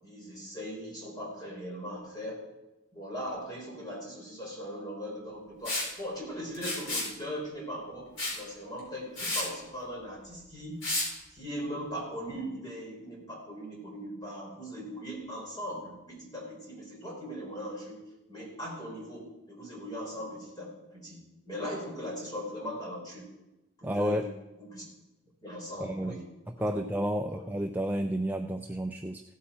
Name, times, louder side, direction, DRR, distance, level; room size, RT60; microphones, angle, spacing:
voice 1, 0.0-2.4 2.9-10.8 11.3-18.0 18.3-23.3 23.8-24.3 24.6-24.8 25.4-26.3 26.6-26.8 27.3-27.4, equal, 20° left, -3 dB, 4.1 m, -39 dB
Liquid, 5.6-5.9 6.5-7.1 8.2-8.4 8.8-8.9 9.2-9.5 10.8-11.1, left 2 dB, 75° left, 4.2 m, -31 dB
voice 2, 23.8-24.3 25.8-26.2 26.6-29.2, equal, 10° right, 5 dB, 0.3 m, -31 dB
16.0 x 8.5 x 4.3 m, 0.99 s
head